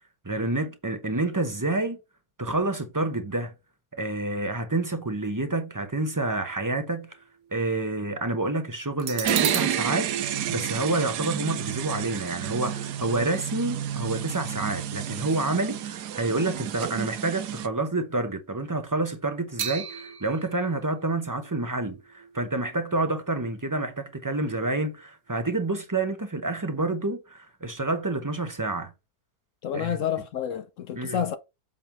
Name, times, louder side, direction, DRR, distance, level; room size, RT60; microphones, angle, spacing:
voice 1, 0.2-2.0 2.4-3.5 3.9-7.1 7.5-28.9 29.7-30.0 30.9-31.2, right 2 dB, 15° right, 0.7 m, -28 dB
sound 1, 6.0-7.6 8.0-8.1 9.0-16.4 16.8-17.0 19.6-23.4 23.7-23.8, right 8 dB, 65° right, 1.2 m, -37 dB
sound 2, 9.2-17.7, right 10 dB, 80° right, 1.3 m, -31 dB
voice 2, 29.6-31.4, left 9 dB, 65° left, 0.8 m, -29 dB
7.5 x 3.7 x 4.4 m
omnidirectional pair, 1.7 m